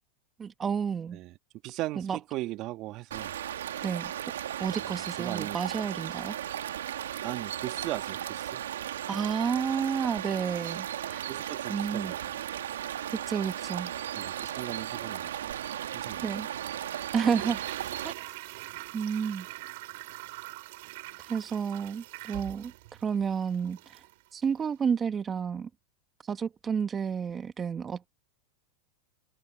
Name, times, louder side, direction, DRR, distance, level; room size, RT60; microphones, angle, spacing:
voice 1, 0.4-1.2 2.0-2.2 3.8-4.1 4.6-6.4 9.1-11.2 11.7-12.1 13.1-13.9 16.2-16.5 17.1-17.6 18.0-18.1 18.9-19.5 21.2-22.7 23.0-24.0 24.3-25.7 26.2-28.1, right 6 dB, 25° right, 1.3 m, -30 dB
voice 2, 1.6-3.3 4.8-5.6 7.2-8.6 11.3-12.4 14.1-15.5 15.9-16.3 18.7-18.8, right 17 dB, 45° right, 1.8 m, -38 dB
sound 1, 3.1-18.1, right 11 dB, 85° right, 1.9 m, -36 dB
Toilet flush, 17.1-24.2 24.5-24.6, right 21 dB, 65° right, 5.3 m, -44 dB
hypercardioid pair, 110°, 0 cm